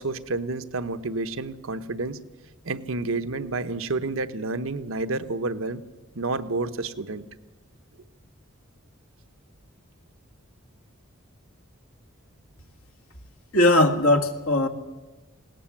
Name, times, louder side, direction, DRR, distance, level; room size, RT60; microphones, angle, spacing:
voice 1, 0.0-2.2 2.6-5.8 6.1-7.2, right 3 dB, 75° right, 10 dB, 0.9 m, -29 dB
voice 2, 13.5-14.7, left 1 dB, 80° left, 5 dB, 1.9 m, -19 dB
20.5 x 17.5 x 7.3 m, 1.2 s
head